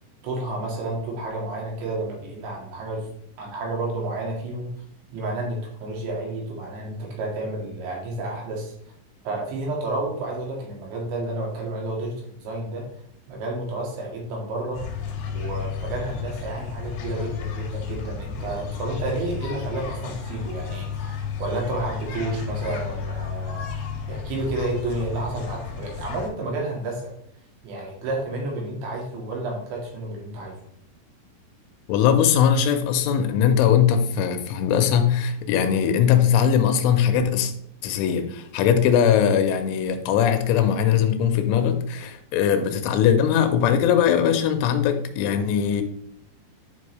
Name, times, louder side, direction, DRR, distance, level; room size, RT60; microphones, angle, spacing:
voice 1, 0.2-3.1 3.4-4.7 5.1-8.7 9.3-12.1 12.4-12.8 13.3-14.8 15.3-27.1 27.6-30.6, right 2 dB, 70° right, 4.1 m, -30 dB
sound 1, 14.7-26.3, left 6 dB, 65° left, 3.3 m, -32 dB
voice 2, 31.9-37.5 37.8-45.8, left 8 dB, 90° left, 3.3 m, -20 dB
10.5 x 5.4 x 3.2 m
omnidirectional pair, 5.5 m